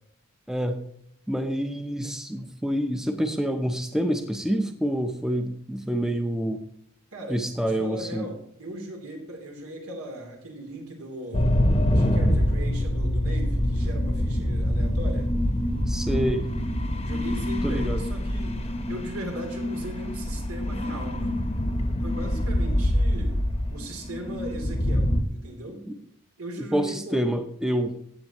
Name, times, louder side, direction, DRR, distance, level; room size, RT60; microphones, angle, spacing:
voice 1, 0.5-0.8 1.3-6.6 7.3-8.2 15.9-16.5 17.6-18.0 22.3-22.8 25.9-26.0 26.7-27.9, equal, ahead, 6 dB, 0.6 m, -27 dB
voice 2, 7.1-11.5 11.9-15.3 17.0-18.6 18.9-21.5 22.0-23.4 23.7-25.8 26.4-27.3, right 1 dB, 85° right, 2 dB, 3.0 m, -38 dB
sound 1, 11.3-25.2, equal, 30° left, 0.9 m, -25 dB
15.0 x 8.8 x 3.0 m, 0.71 s
head